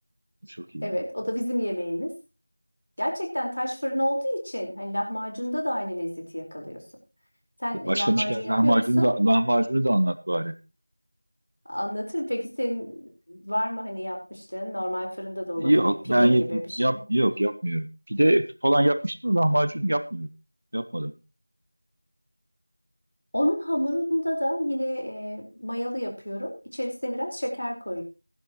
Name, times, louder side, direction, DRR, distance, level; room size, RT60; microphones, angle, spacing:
voice 1, 0.8-2.1 3.0-6.8 7.6-9.1 11.6-17.0 23.3-28.0, equal, 60° left, 2 dB, 4.8 m, -30 dB
voice 2, 7.9-10.5 15.6-20.3 20.7-21.1, right 1 dB, 40° right, 12 dB, 0.8 m, -23 dB
16.0 x 11.5 x 3.1 m, 0.29 s
figure-of-eight pair, 175°, 0 cm